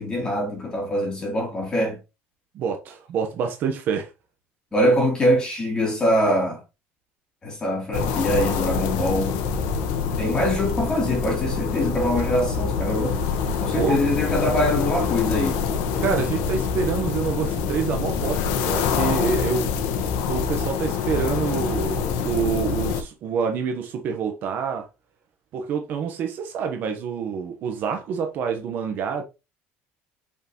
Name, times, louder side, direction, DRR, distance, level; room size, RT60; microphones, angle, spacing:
voice 1, 0.0-2.0 4.7-6.6 7.4-9.4 10.2-13.2 13.6-15.6, equal, 15° left, 3.2 m, -23 dB
voice 2, 2.5-4.1 13.7-14.0 16.0-19.7 20.3-24.9 25.5-29.2, right 6 dB, 45° right, 1.1 m, -27 dB
sound 1, 7.9-23.0, left 6 dB, 80° left, 1.3 m, -25 dB
6.5 x 5.8 x 3.1 m
cardioid pair, 170°, 5 cm